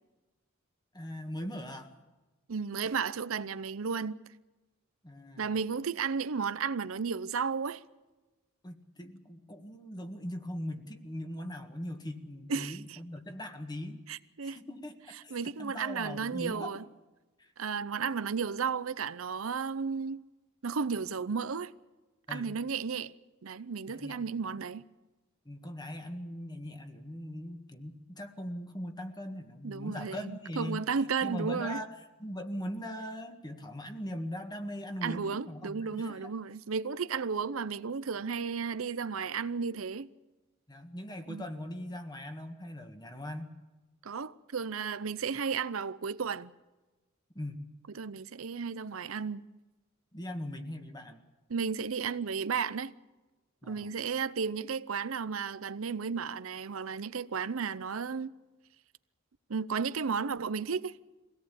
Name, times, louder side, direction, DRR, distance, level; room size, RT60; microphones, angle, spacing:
voice 1, 0.9-1.9 5.0-5.5 8.6-14.0 14.4-15.0 15.2-15.3 15.6-16.7 17.4-17.5 22.3-22.5 23.9-24.2 25.5-30.9 31.2-31.9 32.2-36.3 40.7-43.6 47.4-47.6 50.1-51.2 53.6-53.9, left 1 dB, 20° left, 1.7 m, -40 dB
voice 2, 2.5-4.2 5.4-7.8 12.5-13.0 14.1-14.6 15.3-16.8 17.6-20.2 20.6-21.7 22.3-23.1 23.4-24.8 29.6-31.8 35.0-40.1 41.3-41.4 44.0-46.5 47.9-49.4 51.5-52.9 53.7-58.3 59.5-61.0, right 5 dB, 85° right, 0.7 m, -33 dB
24.0 x 17.5 x 8.5 m
head